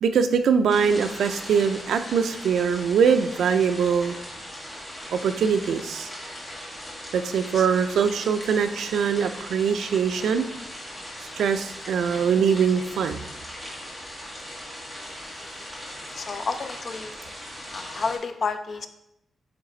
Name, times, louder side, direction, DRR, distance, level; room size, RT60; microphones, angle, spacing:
voice 1, 0.0-4.1 5.1-6.1 7.1-10.5 11.4-13.2, right 6 dB, 80° right, 9 dB, 0.4 m, -22 dB
sound 1, 0.7-18.2, equal, 10° left, 1.9 m, -39 dB
voice 2, 16.2-17.2 17.7-18.9, left 4 dB, 40° left, 8 dB, 0.5 m, -30 dB
8.8 x 3.2 x 3.9 m, 0.81 s
wide cardioid pair, 170°, 0 cm